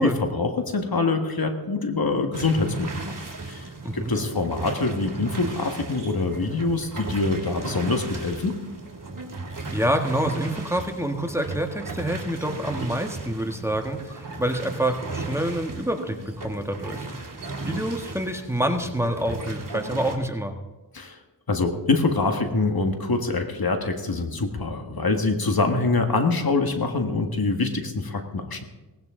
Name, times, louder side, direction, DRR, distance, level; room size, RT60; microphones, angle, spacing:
voice 1, 0.0-3.1 3.5-8.6 20.9-21.2 21.5-28.6, left 3 dB, 55° left, 5 dB, 1.8 m, -25 dB
sound 1, 2.3-20.2, right 2 dB, 45° right, 3.0 m, -36 dB
voice 2, 9.7-17.1 17.6-20.5, right 1 dB, 5° right, 5 dB, 1.5 m, -27 dB
18.0 x 16.0 x 3.8 m, 1.1 s
cardioid pair, 55°, 43 cm